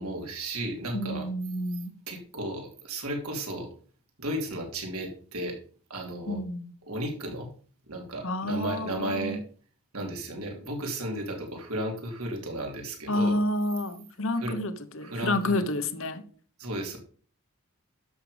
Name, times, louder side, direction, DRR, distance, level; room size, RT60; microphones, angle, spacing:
voice 1, 0.0-1.3 2.1-3.7 4.2-5.6 5.9-6.4 6.9-7.5 7.9-9.4 9.9-13.4 14.3-14.6 15.0-15.6 16.6-17.0, right 1 dB, 75° right, 3.1 m, -34 dB
voice 2, 0.9-1.9 6.3-6.7 8.2-9.4 13.1-16.2, left 1 dB, 60° left, 1.1 m, -29 dB
11.5 x 6.7 x 5.1 m
head